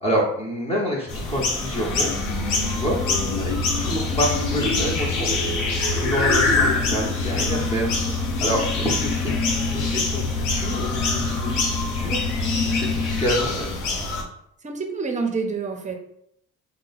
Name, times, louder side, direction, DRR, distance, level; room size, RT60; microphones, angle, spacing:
voice 1, 0.0-2.2 2.7-12.3 12.6-13.7, equal, 20° left, -3 dB, 0.8 m, -28 dB
sound 1, 1.1-14.2, left 3 dB, 85° left, 0.7 m, -26 dB
sound 2, 1.9-13.3, left 4 dB, 50° left, 0.8 m, -27 dB
voice 2, 14.6-16.0, right 4 dB, 25° right, 4 dB, 0.6 m, -27 dB
2.7 x 2.1 x 3.9 m, 0.71 s
cardioid pair, 90°, 30 cm